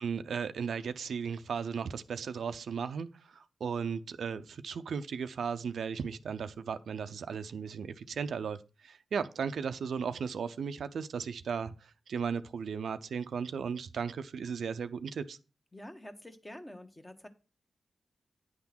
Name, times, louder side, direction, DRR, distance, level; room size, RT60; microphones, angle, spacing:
voice 1, 0.0-15.4, right 6 dB, 80° right, 0.5 m, -36 dB
voice 2, 15.7-17.3, left 1 dB, 20° left, 1.2 m, -47 dB
9.5 x 3.6 x 5.9 m
cardioid pair, 50°, 0 cm